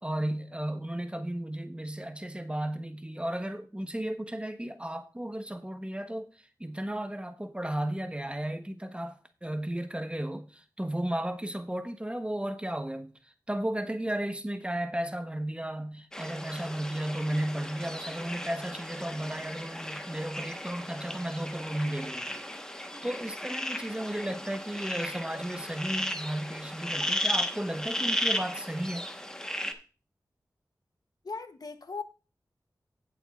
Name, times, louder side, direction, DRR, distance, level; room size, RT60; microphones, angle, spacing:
voice 1, 0.0-22.3 22.7-29.1, right 1 dB, 15° right, 1.2 m, -34 dB
sound 1, 16.1-29.7, left 1 dB, 10° left, 1.3 m, -35 dB
voice 2, 31.2-32.0, left 4 dB, 60° left, 0.9 m, -38 dB
17.0 x 7.1 x 2.5 m
cardioid pair, 50°, 7 cm